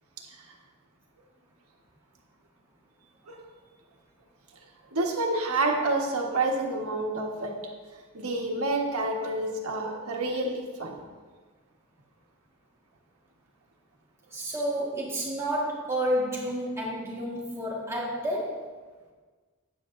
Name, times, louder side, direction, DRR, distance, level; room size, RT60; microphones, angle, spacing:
voice 1, 4.9-7.5 8.1-11.0, right 2 dB, 85° right, 1 dB, 1.5 m, -28 dB
voice 2, 14.3-18.7, equal, 10° right, -4 dB, 1.7 m, -30 dB
12.5 x 9.3 x 2.6 m, 1.4 s
head